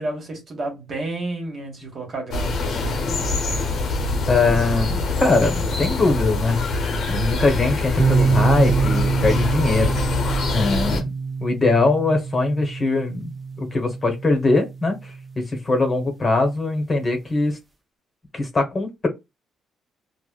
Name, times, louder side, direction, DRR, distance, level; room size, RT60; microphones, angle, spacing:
voice 1, 0.0-3.0, right 2 dB, 45° right, 1.4 m, -31 dB
sound 1, 2.3-11.0, left 2 dB, 65° left, 0.7 m, -24 dB
voice 2, 4.3-6.7 7.1-9.9 10.5-11.0 11.4-17.6 18.3-19.1, left 3 dB, 35° left, 0.9 m, -21 dB
sound 2, 8.0-15.7, right 5 dB, 25° right, 0.6 m, -25 dB
4.6 x 2.1 x 2.3 m
cardioid pair, 90°, 0 cm